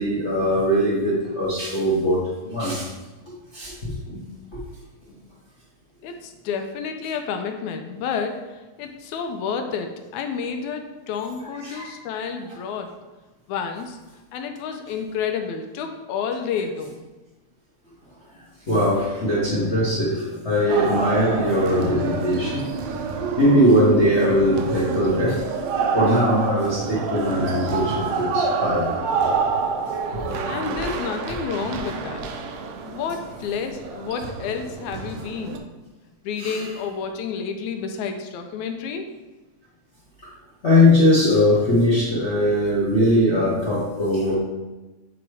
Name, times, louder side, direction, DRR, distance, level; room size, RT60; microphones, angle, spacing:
voice 1, 0.0-2.9 3.3-3.7 4.1-4.2 4.5-4.6 11.6-11.9 18.7-22.6 23.4-25.4 25.9-28.9 30.1-30.2 30.8-30.9 36.4-36.6 40.6-44.3, left 1 dB, 65° left, -7 dB, 0.6 m, -20 dB
voice 2, 6.0-12.9 13.5-14.0 14.3-17.0 30.5-32.3 32.8-35.7 36.2-39.1, left 6 dB, 80° left, 5 dB, 2.0 m, -30 dB
sound 1, 20.7-35.6, right 4 dB, 90° right, 1.3 m, -27 dB
8.4 x 3.0 x 4.7 m, 1.1 s
omnidirectional pair, 3.5 m